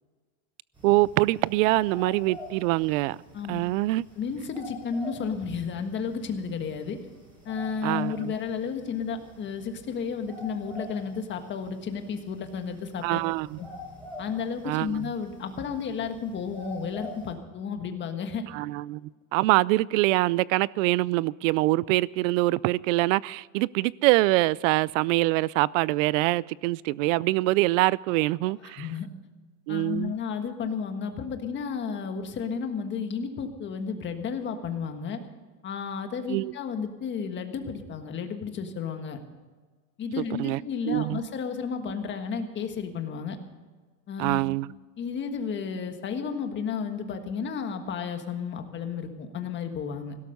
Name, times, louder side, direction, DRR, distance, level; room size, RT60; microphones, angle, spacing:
sound 1, 0.7-17.3, left 1 dB, 10° right, 5.8 m, -46 dB
voice 1, 0.8-3.2 3.5-4.0 7.8-8.3 13.0-13.6 14.7-15.1 18.5-19.0 19.3-28.9 29.7-30.1 36.3-36.5 40.4-40.6 40.9-41.2 44.2-44.7, right 20 dB, 80° right, 0.5 m, -24 dB
voice 2, 3.3-3.6 4.1-7.0 7.4-13.2 13.6-13.7 14.2-18.4 28.6-29.1 29.7-35.2 35.6-39.2 40.0-43.4 44.1-44.4 45.0-50.2, left 6 dB, 30° left, 1.5 m, -32 dB
17.0 x 12.5 x 5.4 m
cardioid pair, 155°, 38 cm